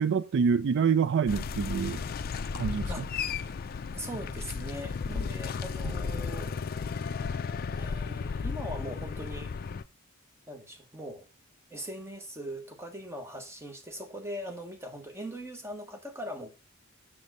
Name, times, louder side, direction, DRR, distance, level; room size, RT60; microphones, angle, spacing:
voice 1, 0.0-2.0 2.6-2.9 5.9-6.0, right 6 dB, 60° right, 0.4 m, -26 dB
sound 1, 1.3-9.8, left 5 dB, 45° left, 0.4 m, -34 dB
voice 2, 3.9-6.6 7.8-9.5 10.5-11.3 11.7-16.5, equal, 15° right, 1.3 m, -40 dB
7.0 x 6.3 x 3.8 m
head